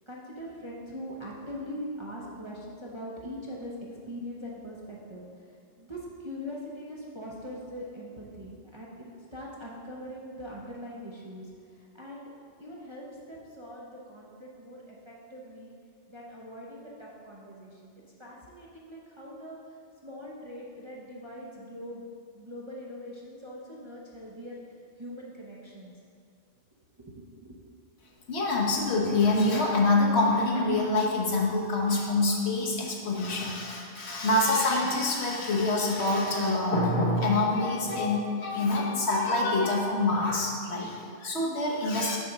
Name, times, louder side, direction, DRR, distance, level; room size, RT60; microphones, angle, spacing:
voice 1, 0.1-3.7 4.1-5.2 5.8-9.1 9.3-11.5 12.0-12.3 12.6-15.7 16.1-17.9 18.2-19.6 20.0-22.0 22.3-25.9 27.0-27.6, equal, 25° right, -5 dB, 0.7 m, -42 dB
voice 2, 28.3-42.2, left 2 dB, 60° left, -2 dB, 1.2 m, -26 dB
6.4 x 4.2 x 5.9 m, 2.4 s
omnidirectional pair, 1.3 m